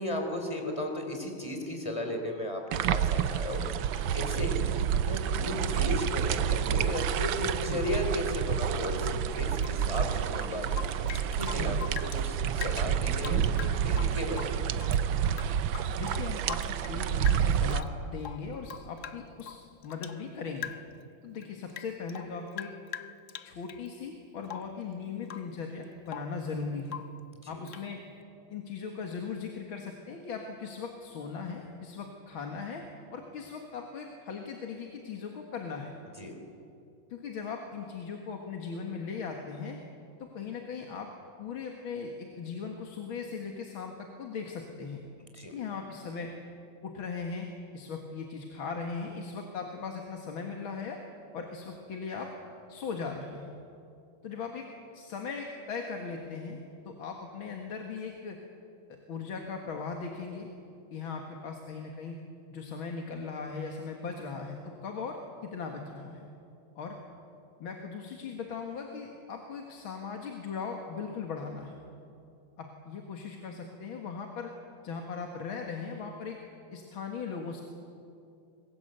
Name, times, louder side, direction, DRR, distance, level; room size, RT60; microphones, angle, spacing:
voice 1, 0.0-4.5 5.0-14.6 27.4-27.6 36.2-36.4 45.2-45.6, left 1 dB, 15° left, 3 dB, 3.6 m, -35 dB
sound 1, 2.7-17.8, right 8 dB, 70° right, 1.4 m, -29 dB
Rain / Drip, 9.6-12.2 12.5-15.0 15.3-17.0 17.3-17.9 18.2-20.2 20.6-21.0 21.4-23.9 24.4-24.8 25.2-25.6 25.8-26.4 26.9-27.2 27.7-27.9, left 9 dB, 85° left, 0.6 m, -43 dB
voice 2, 16.0-19.6 19.8-20.7 21.2-22.7 23.4-27.0 27.5-28.0 28.5-32.8 33.1-35.9 37.1-39.8 40.2-41.1 41.4-45.0 45.5-46.3 46.8-47.5 47.7-51.0 51.3-52.3 52.7-53.5 54.2-54.7 54.9-58.4 59.1-60.5 60.9-62.2 62.5-66.3 66.8-67.0 67.6-71.8 72.6-74.5 74.8-76.4 76.7-77.6, left 5 dB, 70° left, 2 dB, 2.5 m, -38 dB
25.5 x 22.0 x 8.0 m, 2.6 s
omnidirectional pair, 2.4 m